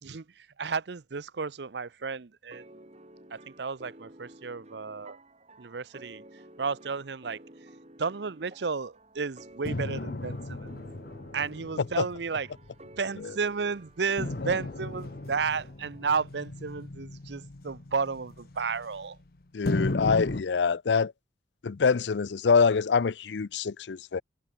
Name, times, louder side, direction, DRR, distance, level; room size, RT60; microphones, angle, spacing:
voice 1, 0.0-2.7 3.3-5.2 5.6-6.2 6.6-7.4 8.0-10.7 11.3-12.5 13.0-19.2, right 5 dB, 70° right, 0.7 m, -32 dB
sound 1, 2.5-16.2, right 1 dB, 40° right, 5.5 m, -52 dB
sound 2, 9.6-13.3 14.2-19.2 19.6-20.4, left 2 dB, 55° left, 1.0 m, -36 dB
voice 2, 19.5-21.1 21.6-24.2, left 5 dB, 85° left, 0.5 m, -25 dB
head